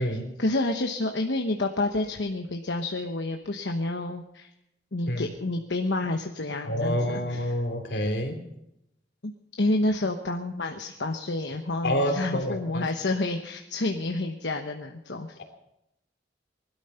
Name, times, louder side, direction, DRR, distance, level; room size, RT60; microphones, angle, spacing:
voice 1, 0.0-4.5 4.9-7.5 9.2-9.3 9.6-15.4, left 2 dB, 85° left, 4 dB, 1.1 m, -29 dB
voice 2, 6.6-8.4 11.8-12.9, equal, 70° left, 4 dB, 3.0 m, -27 dB
20.0 x 12.5 x 5.7 m, 0.84 s
head